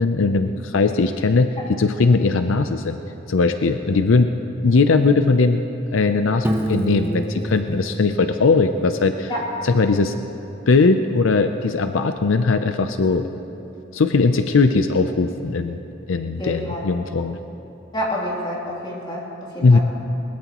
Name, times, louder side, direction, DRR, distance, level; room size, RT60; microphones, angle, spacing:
voice 1, 0.0-3.0 3.3-4.3 4.6-5.6 5.9-9.3 9.6-10.1 10.7-13.3 13.9-15.8 16.1-17.4 19.6-19.8, left 3 dB, 75° left, 8 dB, 0.6 m, -19 dB
Piano, 6.4-9.2, right 1 dB, 10° right, 0.9 m, -28 dB
voice 2, 16.4-16.8 17.9-19.2 19.5-19.8, left 1 dB, 25° left, -4 dB, 2.9 m, -27 dB
21.0 x 21.0 x 3.0 m, 2.9 s
head